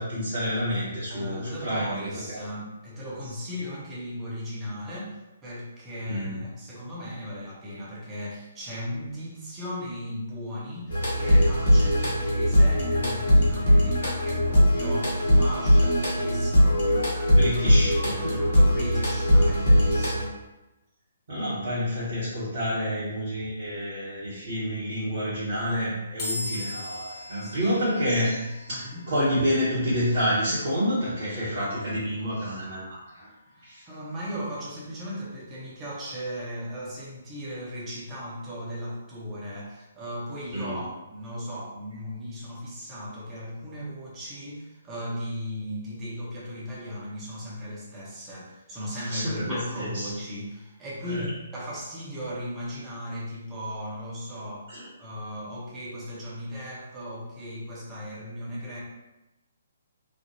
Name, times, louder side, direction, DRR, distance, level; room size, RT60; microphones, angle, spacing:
voice 1, 0.0-2.4 6.1-6.3 17.3-18.5 19.9-20.1 21.3-33.3 33.6-33.9 40.5-40.8 49.0-50.1 51.0-51.3 54.7-54.9, equal, 55° right, -10 dB, 1.1 m, -29 dB
voice 2, 1.1-17.1 18.4-20.3 27.4-27.8 28.4-29.0 33.5-54.7 55.0-58.8, equal, 15° right, -6 dB, 0.7 m, -37 dB
sound 1, 10.9-20.3, equal, 55° left, 1.1 m, -21 dB
sound 2, 26.2-39.5, left 2 dB, 30° left, 0.9 m, -44 dB
3.2 x 2.1 x 2.9 m, 0.99 s
figure-of-eight pair, 130°, 0 cm